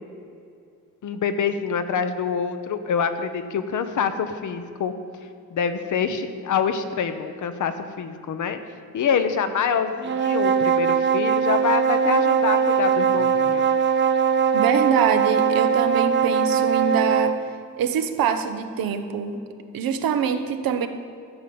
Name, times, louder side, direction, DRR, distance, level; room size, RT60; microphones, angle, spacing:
voice 1, 1.0-4.9 5.5-8.6 8.9-13.7, left 6 dB, 55° left, 9 dB, 1.0 m, -26 dB
sound 1, 10.0-17.4, right 7 dB, 35° right, 0.6 m, -21 dB
voice 2, 14.5-17.4 17.8-19.4 19.7-20.9, right 7 dB, 80° right, 8 dB, 1.0 m, -24 dB
13.5 x 5.2 x 8.6 m, 2.5 s
cardioid pair, 125°, 35 cm